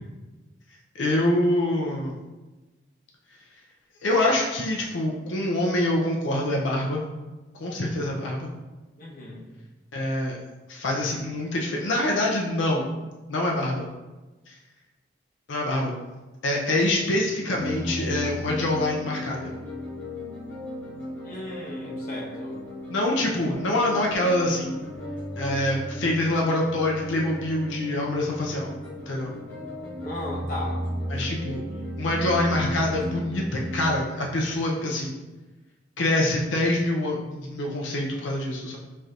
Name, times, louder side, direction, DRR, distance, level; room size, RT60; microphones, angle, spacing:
voice 1, 0.9-2.1 4.0-7.0 7.6-8.5 9.9-10.4 10.7-12.9 13.3-13.9 14.5-14.6 15.5-15.9 16.4-19.5 22.9-24.8 25.4-28.7 29.1-29.3 31.1-31.6 32.0-35.2 36.0-38.8, left 1 dB, 80° left, -2 dB, 0.5 m, -25 dB
voice 2, 9.0-9.4 21.2-22.5 30.0-30.8, left 1 dB, 45° left, -6 dB, 0.9 m, -36 dB
sound 1, 17.6-34.0, equal, 10° left, 1.3 m, -35 dB
4.2 x 3.2 x 2.5 m, 1.1 s
head